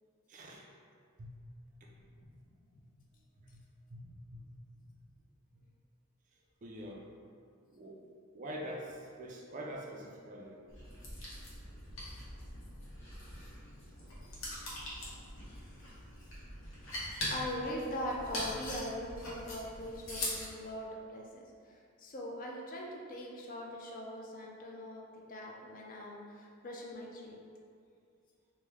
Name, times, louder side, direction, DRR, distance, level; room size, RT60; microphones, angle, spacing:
voice 1, 0.3-0.7 1.2-1.4 1.8-2.1 3.4-3.6 3.9-5.0 5.5-5.6 6.6-7.1 7.7-8.0 8.3-10.6 13.8-14.0 16.4-16.5, equal, 40° right, -1 dB, 0.3 m, -46 dB
sound 1, 10.7-20.5, left 1 dB, 70° left, 0.8 m, -42 dB
voice 2, 16.8-27.4, equal, 40° left, -1 dB, 0.4 m, -42 dB
3.1 x 2.1 x 3.4 m, 2.3 s
head